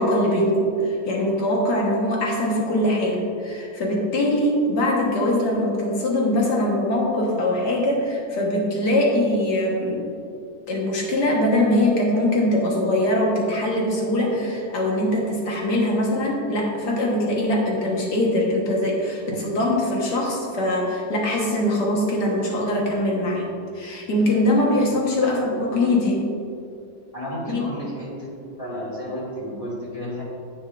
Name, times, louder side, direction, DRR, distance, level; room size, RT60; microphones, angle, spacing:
voice 1, 0.0-10.1 10.7-26.2 27.5-27.6, left 1 dB, 75° left, -2 dB, 2.0 m, -22 dB
voice 2, 27.1-28.3 28.6-30.2, equal, 20° left, -7 dB, 2.1 m, -32 dB
10.0 x 8.2 x 2.5 m, 2.5 s
omnidirectional pair, 1.8 m